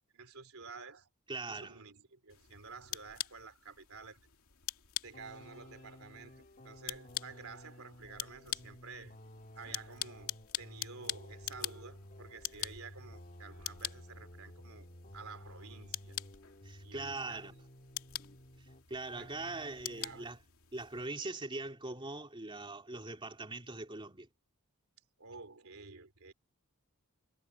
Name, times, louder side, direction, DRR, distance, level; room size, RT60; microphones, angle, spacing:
voice 1, 0.1-1.1 1.5-4.2 5.0-9.2 9.5-14.9 15.1-16.2 16.8-17.6 19.2-20.4 25.2-26.3, right 4 dB, 70° right, 3.5 m, -51 dB
voice 2, 1.3-1.8 16.6-17.5 18.9-20.4 20.7-24.3, right 2 dB, 25° right, 3.3 m, -41 dB
sound 1, 2.3-21.1, left 12 dB, 70° left, 2.7 m, -45 dB
sound 2, 5.1-18.9 19.1-20.3, left 1 dB, 40° left, 2.4 m, -54 dB
head